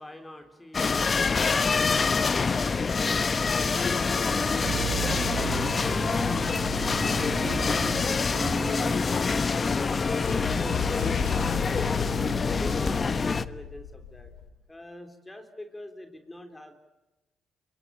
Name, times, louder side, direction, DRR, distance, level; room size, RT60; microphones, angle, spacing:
sound 1, 0.7-13.4, left 4 dB, 35° left, 1.0 m, -26 dB
sound 2, 4.1-10.6, right 8 dB, 75° right, 4.7 m, -37 dB
sound 3, 9.6-14.5, left 7 dB, 80° left, 3.4 m, -35 dB
voice 1, 11.9-12.2 12.4-14.3 14.7-16.8, left 1 dB, 15° left, 6 dB, 3.5 m, -46 dB
26.0 x 24.5 x 8.6 m, 1.0 s
cardioid pair, 90°, 0 cm